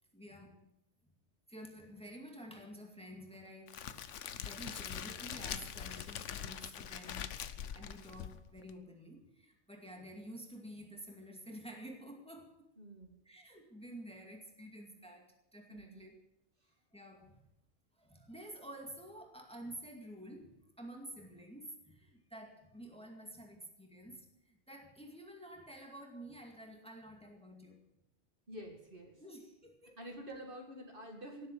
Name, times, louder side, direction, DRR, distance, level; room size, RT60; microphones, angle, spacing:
voice 1, 0.1-0.7 1.5-4.0 4.4-7.4 7.7-12.7 13.2-16.2 16.9-17.4 18.0-27.9 29.2-30.0, right 1 dB, 5° left, 2 dB, 2.2 m, -50 dB
Crackle, 3.7-8.7, left 9 dB, 90° left, 1.1 m, -43 dB
voice 2, 12.8-13.1 15.7-16.0 28.5-29.1 30.0-31.5, equal, 50° right, 2 dB, 2.4 m, -48 dB
18.0 x 7.8 x 8.6 m, 0.85 s
omnidirectional pair, 1.2 m